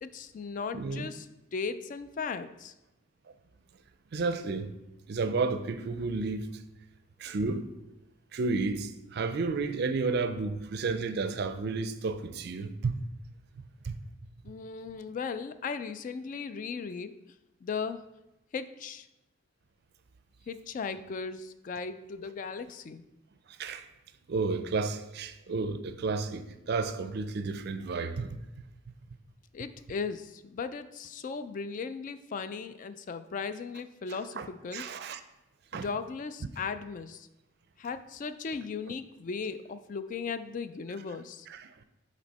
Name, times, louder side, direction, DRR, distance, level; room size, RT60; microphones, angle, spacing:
voice 1, 0.0-1.3 1.5-2.7 14.4-17.2 17.6-18.0 18.5-19.1 20.5-23.0 29.5-34.8 35.7-37.3 37.8-41.5, left 5 dB, 40° left, 0.3 m, -37 dB
voice 2, 0.7-1.1 4.1-4.7 5.1-6.6 7.2-7.7 8.3-13.0 13.8-14.0 23.6-23.9 24.3-28.4 34.1-34.5 34.7-35.2 35.7-35.9 41.5-41.7, right 4 dB, 55° right, 0.4 m, -32 dB
6.1 x 4.2 x 4.1 m
head